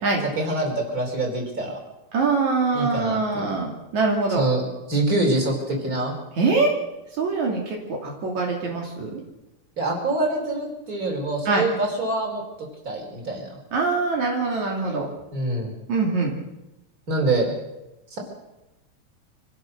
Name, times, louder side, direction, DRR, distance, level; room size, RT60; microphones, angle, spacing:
voice 1, 0.4-1.8 2.7-3.5 4.4-4.6 4.9-6.1 9.8-12.4 12.8-13.6 15.3-15.7 17.1-17.5 18.1-18.2, right 2 dB, 30° right, 0 dB, 5.1 m, -25 dB
voice 2, 2.1-4.5 6.4-6.7 7.2-9.2 11.5-11.6 13.7-15.1 15.9-16.3, right 3 dB, 75° right, 0 dB, 4.0 m, -23 dB
25.5 x 16.0 x 6.6 m, 0.96 s
omnidirectional pair, 3.4 m